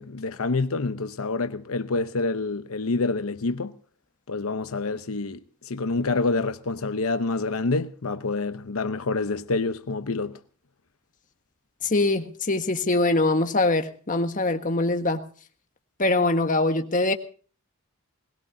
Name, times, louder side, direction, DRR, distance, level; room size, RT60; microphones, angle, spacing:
voice 1, 0.0-3.7 4.3-5.4 5.7-10.3, left 3 dB, 85° left, 0.8 m, -27 dB
voice 2, 11.9-15.2 16.0-17.1, left 2 dB, 40° left, 1.5 m, -23 dB
21.5 x 19.5 x 2.7 m
head